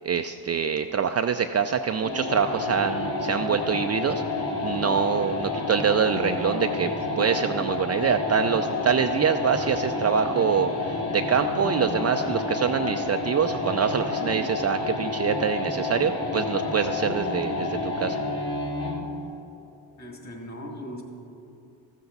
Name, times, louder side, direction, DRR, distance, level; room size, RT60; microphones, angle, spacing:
voice 1, 0.0-6.9 7.2-18.2, right 7 dB, 35° right, 7 dB, 0.4 m, -25 dB
sound 1, 2.0-19.0, left 3 dB, 50° left, 2.3 m, -29 dB
voice 2, 20.0-21.0, equal, 35° left, 1 dB, 2.3 m, -38 dB
13.5 x 7.2 x 4.0 m, 2.7 s
supercardioid pair, 60°, 47 cm